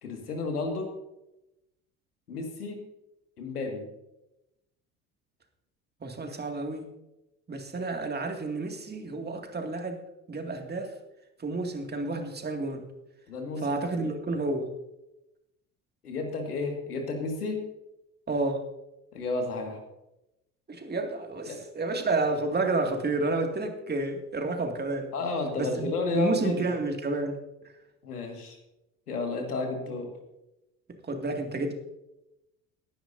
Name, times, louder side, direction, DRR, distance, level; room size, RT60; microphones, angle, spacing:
voice 1, 0.0-0.9 2.3-2.8 3.4-3.8 13.3-14.0 16.0-17.6 19.1-19.8 21.5-21.6 25.1-26.6 28.0-28.6 29.1-30.1, left 3 dB, 80° left, 3 dB, 2.1 m, -32 dB
voice 2, 6.0-6.9 7.5-10.0 10.3-10.9 11.4-12.8 13.6-14.7 18.3-18.7 20.7-25.1 25.6-25.9 26.1-27.4 31.1-31.7, right 2 dB, 20° right, 3 dB, 2.3 m, -30 dB
18.5 x 10.5 x 2.7 m, 0.92 s
figure-of-eight pair, 65°, 45 cm